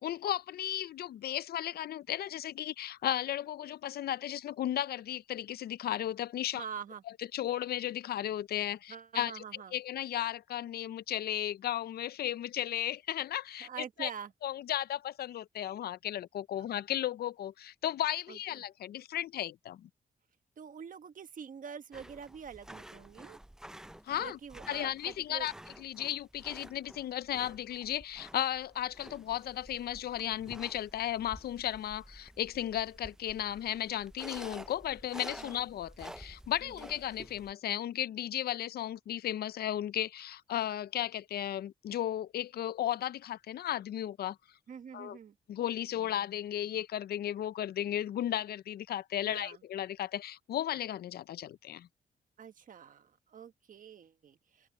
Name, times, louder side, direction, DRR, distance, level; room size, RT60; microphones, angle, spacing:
voice 1, 0.0-6.6 7.3-9.3 9.7-14.1 14.4-19.9 24.0-24.4 24.7-25.5 25.8-44.4 44.9-45.2 45.5-51.9, left 11 dB, 70° left, 0.4 m, -35 dB
voice 2, 6.5-7.0 8.9-9.7 13.6-14.3 16.6-16.7 18.3-18.6 20.6-23.4 24.2-25.5 35.4-35.6 36.6-36.9 44.7-45.4 49.3-49.6 52.4-54.7, right 7 dB, 55° right, 1.3 m, -46 dB
sound 1, 21.9-37.5, right 1 dB, 5° right, 0.4 m, -51 dB
wide cardioid pair, 130°, 17 cm